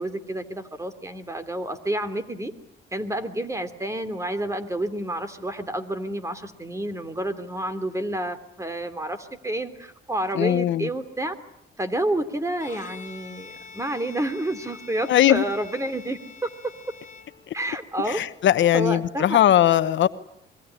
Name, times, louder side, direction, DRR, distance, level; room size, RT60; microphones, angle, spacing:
voice 1, 0.0-2.5 2.9-11.3 11.8-16.5 17.5-18.2 18.7-19.4, right 1 dB, 15° right, 3.0 m, -29 dB
voice 2, 10.3-10.9 15.1-15.4 17.5-17.6 18.1-20.1, left 11 dB, 70° left, 1.1 m, -19 dB
Bowed string instrument, 12.5-17.8, left 5 dB, 40° left, 4.6 m, -45 dB
26.5 x 22.5 x 9.9 m
cardioid pair, 90°, 20 cm